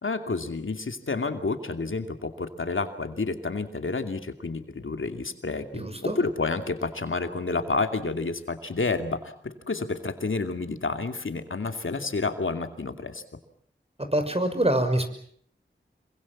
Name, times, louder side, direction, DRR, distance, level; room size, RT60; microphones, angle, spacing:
voice 1, 0.0-13.2, left 3 dB, 90° left, 7 dB, 2.6 m, -30 dB
voice 2, 5.7-6.2 14.1-15.0, right 1 dB, 30° right, 8 dB, 6.0 m, -25 dB
27.0 x 23.5 x 7.3 m, 0.64 s
wide cardioid pair, 45°, 20 cm